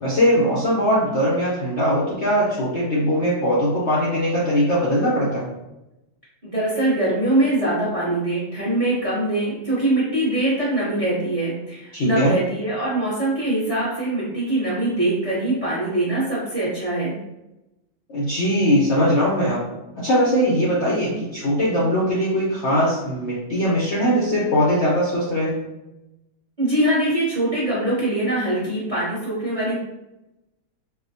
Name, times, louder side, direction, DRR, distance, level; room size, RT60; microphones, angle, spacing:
voice 1, 0.0-5.5 11.9-12.3 18.1-19.6 20.0-25.6, equal, 55° left, -7 dB, 0.7 m, -20 dB
voice 2, 6.4-17.2 26.6-29.8, right 1 dB, 30° right, -7 dB, 0.7 m, -23 dB
4.5 x 2.2 x 2.6 m, 0.94 s
omnidirectional pair, 2.0 m